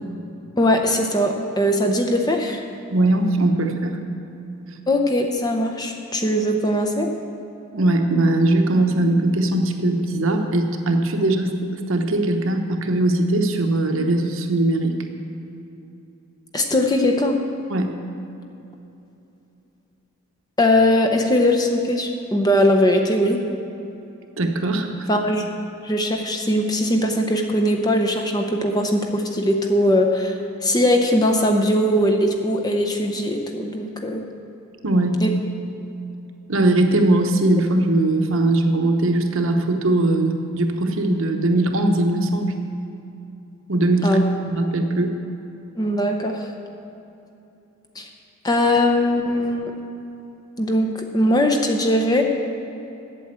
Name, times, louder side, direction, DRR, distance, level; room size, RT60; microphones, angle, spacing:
voice 1, 0.6-2.6 4.9-7.1 16.5-17.4 20.6-23.4 25.1-25.4 25.8-30.4 30.6-34.2 35.2-35.3 44.0-44.2 45.8-46.5 48.0-48.1 48.4-49.7 50.6-52.2, left 1 dB, 15° left, 3 dB, 0.7 m, -20 dB
voice 2, 2.9-4.0 7.7-11.5 11.9-15.0 17.7-17.9 24.4-25.1 34.8-35.2 36.5-42.5 43.7-44.2 44.5-45.2, right 2 dB, 65° right, 4 dB, 0.9 m, -20 dB
8.4 x 7.6 x 8.0 m, 2.9 s
head